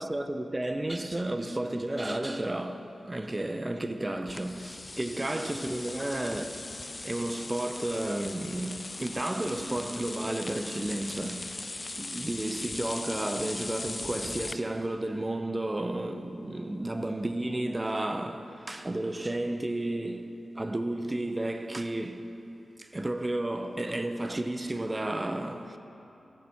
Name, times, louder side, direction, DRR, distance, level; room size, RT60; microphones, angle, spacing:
voice 1, 0.0-6.6 7.0-22.3 22.8-25.8, right 1 dB, 25° right, 0.7 m, -32 dB
sound 1, 4.3-14.5, left 2 dB, 35° left, 0.5 m, -39 dB
15.5 x 6.9 x 5.9 m
cardioid pair, 50°, 0 cm